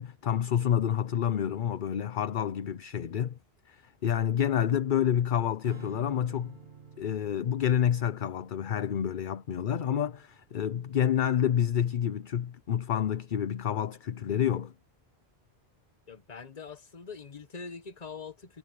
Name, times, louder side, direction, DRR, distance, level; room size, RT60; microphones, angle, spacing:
voice 1, 0.0-3.4 3.7-6.6 7.0-14.7, left 9 dB, 55° left, 0.8 m, -28 dB
Strum, 5.6-12.0, right 4 dB, 45° right, 2.0 m, -53 dB
voice 2, 16.1-18.6, left 5 dB, 40° left, 1.2 m, -43 dB
omnidirectional pair, 1.1 m